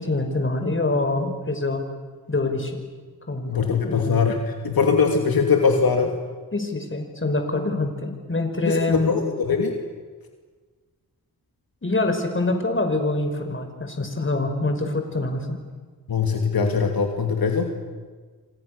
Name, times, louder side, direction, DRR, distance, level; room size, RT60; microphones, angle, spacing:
voice 1, 0.0-1.8 2.3-2.8 3.3-3.5 3.8-4.2 6.5-9.1 11.8-15.6, left 2 dB, 35° left, 5 dB, 5.5 m, -25 dB
voice 2, 3.5-6.1 8.7-9.7 16.1-17.7, left 5 dB, 75° left, 3 dB, 2.7 m, -21 dB
29.0 x 26.0 x 6.8 m, 1.4 s
cardioid pair, 65°, 36 cm